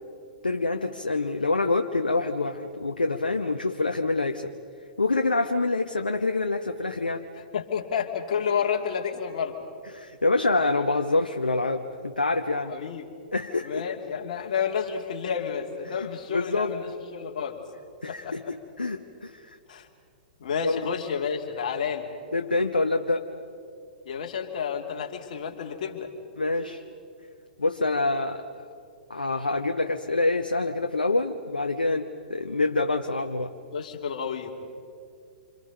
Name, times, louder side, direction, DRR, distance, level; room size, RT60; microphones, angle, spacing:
voice 1, 0.4-4.5 5.0-7.3 9.9-12.7 13.3-13.8 16.3-16.7 18.0-19.5 20.6-20.8 22.3-23.3 26.4-26.8 27.6-28.7 29.1-33.5, left 3 dB, 80° left, 5 dB, 1.0 m, -26 dB
voice 2, 7.5-9.6 12.6-13.1 13.6-17.6 18.1-18.3 19.7-19.9 20.4-22.1 24.0-26.1 33.7-34.6, left 7 dB, 50° left, 3 dB, 2.7 m, -30 dB
28.5 x 26.5 x 5.4 m, 2.3 s
figure-of-eight pair, 110°, 5 cm